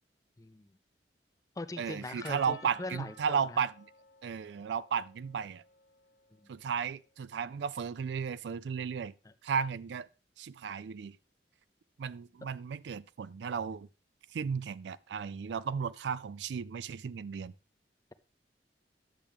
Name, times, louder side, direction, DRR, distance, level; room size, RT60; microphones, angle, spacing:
voice 1, 0.4-0.7 1.6-3.6 6.4-6.5 9.2-9.3, left 2 dB, 20° left, 0.4 m, -41 dB
voice 2, 1.8-3.9 4.2-5.6 6.5-9.1 9.4-10.1 10.4-11.2 12.0-13.9 14.3-17.5, right 6 dB, 70° right, 0.3 m, -34 dB
Percussion, 2.2-6.7, left 3 dB, 70° left, 0.9 m, -56 dB
10.5 x 7.2 x 3.5 m
head